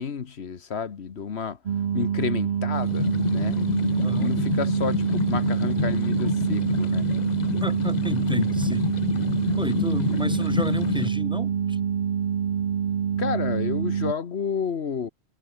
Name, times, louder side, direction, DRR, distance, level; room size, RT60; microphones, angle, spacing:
voice 1, 0.0-1.6 1.9-3.1 3.3-3.6 4.2-7.1 13.2-15.1, left 6 dB, 80° left, 1.5 m, -30 dB
sound 1, 1.7-14.1, right 8 dB, 55° right, 0.8 m, -26 dB
sound 2, 2.7-11.1, left 9 dB, 55° left, 0.6 m, -29 dB
voice 2, 4.0-4.3 7.6-8.9 9.6-11.8, equal, 5° right, 4.9 m, -32 dB
omnidirectional pair, 1.1 m